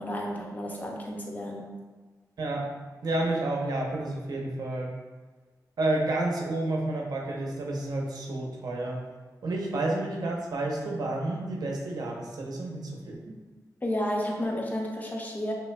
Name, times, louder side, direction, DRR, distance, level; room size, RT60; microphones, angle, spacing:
voice 1, 0.0-1.8 13.8-15.5, left 1 dB, 25° left, 0 dB, 0.8 m, -32 dB
voice 2, 2.4-2.7 3.0-4.9 5.8-9.0 9.4-13.3, right 2 dB, 70° right, -1 dB, 0.8 m, -30 dB
5.8 x 3.6 x 2.2 m, 1.3 s
wide cardioid pair, 120°, 7 cm